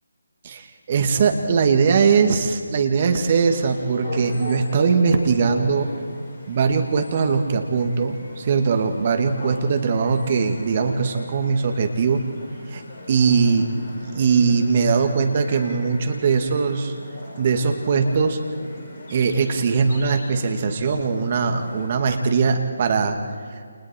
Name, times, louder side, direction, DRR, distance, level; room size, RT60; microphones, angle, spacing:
voice 1, 0.4-5.9 6.5-12.2 12.7-12.8 13.1-13.7 14.1-16.9 17.4-18.4 19.1-23.2, right 5 dB, 35° right, 5 dB, 2.3 m, -20 dB
sound 1, 3.3-21.9, left 1 dB, 30° left, 6.9 m, -39 dB
29.5 x 29.0 x 4.6 m, 2.2 s
figure-of-eight pair, 150°, 0 cm